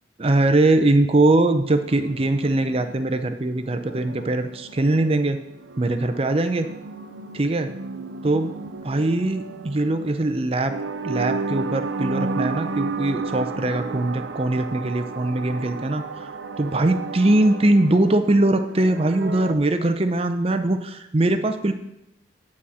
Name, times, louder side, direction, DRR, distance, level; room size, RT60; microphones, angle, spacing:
voice 1, 0.2-5.4 5.8-6.7 7.3-7.7 8.2-8.5 8.8-10.7 11.0-16.3 16.6-21.7, right 2 dB, 30° right, 8 dB, 0.6 m, -21 dB
sound 1, 1.7-19.6, right 4 dB, 80° right, 0.6 m, -33 dB
9.3 x 4.3 x 6.3 m, 0.85 s
head